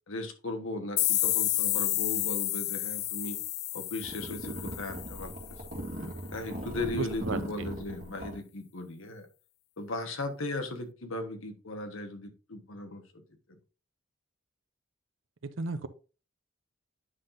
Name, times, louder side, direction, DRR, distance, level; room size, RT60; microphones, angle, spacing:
voice 1, 0.1-3.4 3.7-5.6 6.3-9.3 9.8-13.0 13.5-13.6, left 2 dB, 75° left, 6 dB, 1.3 m, -37 dB
sound 1, 1.0-5.6, left 15 dB, 50° left, 0.3 m, -30 dB
sound 2, 4.0-8.4, equal, 40° right, 2.2 m, -40 dB
voice 2, 6.9-7.7 15.6-15.9, right 3 dB, 65° right, 11 dB, 0.7 m, -34 dB
9.6 x 5.7 x 2.6 m, 0.34 s
head